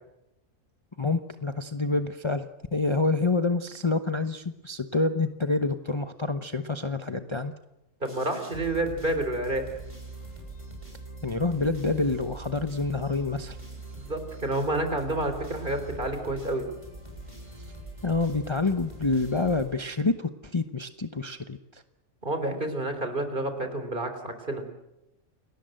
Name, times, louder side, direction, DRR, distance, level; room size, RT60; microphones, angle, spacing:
voice 1, 1.0-7.5 11.2-13.6 18.0-21.8, left 3 dB, 25° left, 8 dB, 0.9 m, -27 dB
sound 1, 8.0-20.2, right 2 dB, 25° right, 7.3 m, -43 dB
voice 2, 8.0-9.7 13.9-16.7 22.2-24.6, right 1 dB, 40° right, 7 dB, 3.8 m, -29 dB
29.5 x 19.0 x 7.8 m, 0.91 s
omnidirectional pair, 1.3 m